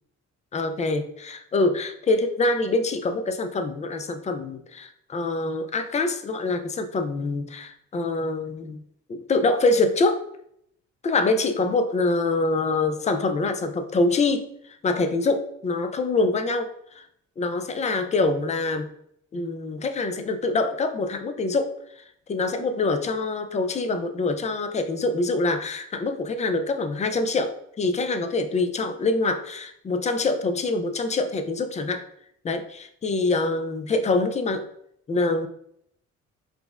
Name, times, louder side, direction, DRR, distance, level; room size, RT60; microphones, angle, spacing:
voice 1, 0.5-8.8 9.1-10.2 11.0-14.5 14.8-17.1 17.4-18.9 19.3-21.7 22.3-32.0 32.4-34.7 35.1-35.5, left 3 dB, 25° left, 8 dB, 0.4 m, -25 dB
4.8 x 2.1 x 2.3 m, 0.72 s
cardioid pair, 90°, 30 cm